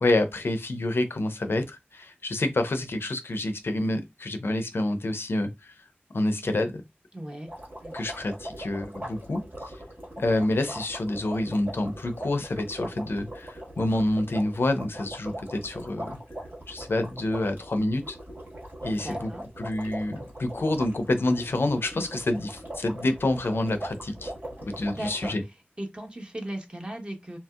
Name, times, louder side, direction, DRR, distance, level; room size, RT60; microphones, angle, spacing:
voice 1, 0.0-5.7 6.1-6.8 7.9-9.8 10.2-16.2 16.7-18.2 18.8-19.3 19.6-24.3 24.6-25.4, left 2 dB, 70° left, 0.5 m, -28 dB
voice 2, 7.1-7.5 7.8-8.1 18.9-19.4 24.6-25.4 25.8-27.4, right 1 dB, 25° right, 0.9 m, -38 dB
sound 1, 7.5-25.3, right 1 dB, 60° right, 1.6 m, -40 dB
2.8 x 2.7 x 2.3 m
wide cardioid pair, 50°, 4 cm